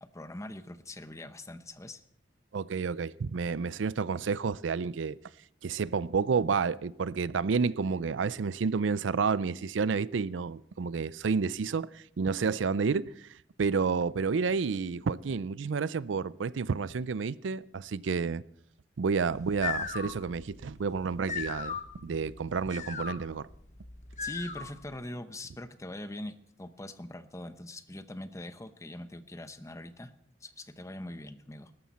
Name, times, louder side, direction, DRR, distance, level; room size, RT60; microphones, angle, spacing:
voice 1, 0.0-2.0 24.2-30.1 30.4-31.7, left 1 dB, 15° left, 0.8 m, -42 dB
voice 2, 2.5-5.2 5.6-13.1 13.6-18.4 19.0-21.8 22.0-23.5, right 5 dB, 85° right, 0.5 m, -30 dB
sound 1, 19.3-24.9, left 6 dB, 40° left, 1.2 m, -39 dB
18.5 x 13.5 x 4.2 m
head